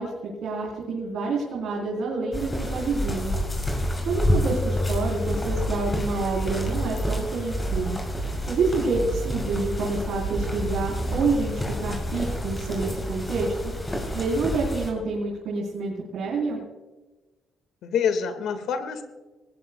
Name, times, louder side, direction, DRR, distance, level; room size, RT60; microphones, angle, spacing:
voice 1, 0.0-3.4 4.1-8.0 8.5-13.7 14.1-16.6, right 3 dB, 75° right, -3 dB, 3.8 m, -28 dB
sound 1, 2.3-14.9, left 1 dB, 20° left, 6.0 m, -29 dB
sound 2, 6.4-7.4 7.7-8.7 8.9-9.9 10.2-11.2, right 6 dB, 60° right, 3.5 m, -34 dB
voice 2, 17.8-19.0, left 7 dB, 80° left, 9 dB, 1.8 m, -27 dB
19.5 x 19.5 x 2.3 m, 1.2 s
cardioid pair, 90°, 0 cm